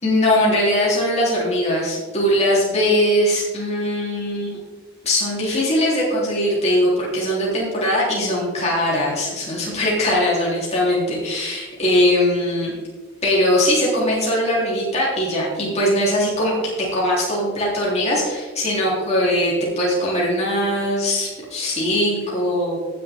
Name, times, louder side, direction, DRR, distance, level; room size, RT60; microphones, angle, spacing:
voice 1, 0.0-4.6 5.0-12.7 13.2-22.8, left 1 dB, 35° left, -5 dB, 3.5 m, -20 dB
18.0 x 6.9 x 3.6 m, 1.4 s
head